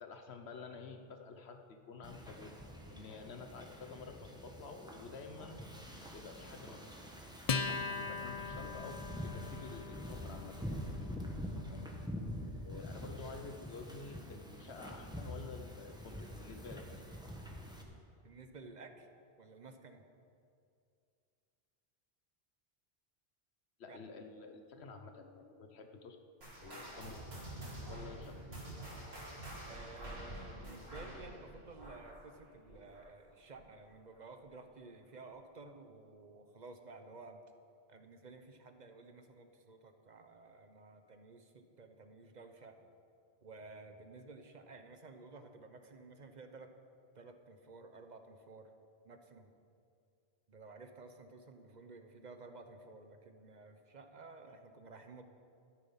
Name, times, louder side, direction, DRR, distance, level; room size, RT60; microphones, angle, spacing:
voice 1, 0.0-2.6 2.9-5.6 6.1-6.9 8.0-10.6 11.7-11.9 12.6-16.8 23.8-26.2 26.6-27.2 27.9-28.4, left 4 dB, 85° left, 6 dB, 1.3 m, -50 dB
Wind / Ocean, 2.0-17.8, equal, 5° right, 1.2 m, -46 dB
Acoustic guitar, 7.5-14.3, left 5 dB, 45° left, 0.5 m, -42 dB
voice 2, 18.2-19.1 19.4-20.0 23.9-24.0 29.7-37.4 37.9-42.9 43.4-46.7 47.1-48.7 49.0-49.5 50.5-55.2, right 3 dB, 45° right, 7 dB, 1.0 m, -53 dB
sound 1, 26.4-33.3 33.5-33.9 34.4-34.5 35.3-35.4, right 1 dB, 70° right, 3.4 m, -47 dB
12.5 x 10.5 x 5.7 m, 2.4 s
omnidirectional pair, 1.1 m